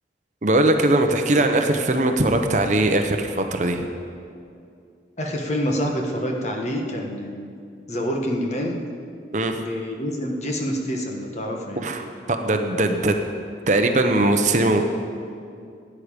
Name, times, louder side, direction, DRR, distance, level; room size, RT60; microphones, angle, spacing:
voice 1, 0.4-3.9 9.3-9.6 11.8-13.2 13.7-14.8, right 2 dB, 40° right, 5 dB, 0.8 m, -20 dB
voice 2, 5.2-7.4 7.9-8.8 9.6-11.9, equal, 40° left, 1 dB, 1.4 m, -27 dB
16.0 x 9.7 x 5.2 m, 2.4 s
head